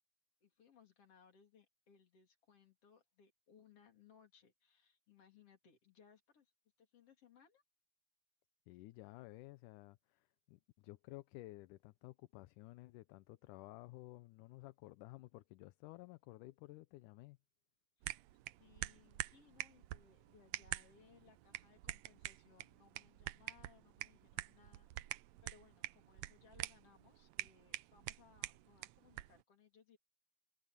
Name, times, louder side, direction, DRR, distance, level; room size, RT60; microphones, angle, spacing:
voice 1, 0.4-6.5 6.8-7.6 18.0-18.1 18.6-24.9 25.4-30.0, left 7 dB, 45° left, 3.9 m, -66 dB
voice 2, 8.7-17.4, left 19 dB, 80° left, 2.1 m, -54 dB
sound 1, 18.0-29.4, right 16 dB, 90° right, 1.5 m, -47 dB
omnidirectional pair, 3.8 m